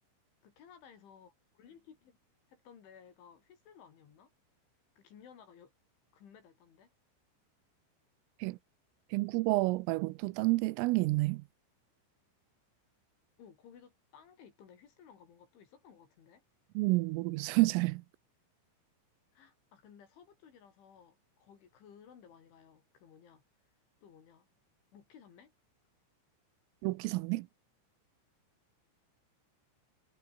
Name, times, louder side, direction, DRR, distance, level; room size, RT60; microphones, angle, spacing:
voice 1, 0.4-2.2 2.5-4.3 5.0-5.7 6.1-6.9 13.4-16.4 19.3-23.4 24.0-24.5 24.9-25.5, left 7 dB, 70° left, 5.9 m, -57 dB
voice 2, 9.1-11.4 16.8-18.0 26.8-27.5, right 22 dB, 85° right, 3.3 m, -29 dB
omnidirectional pair, 5.8 m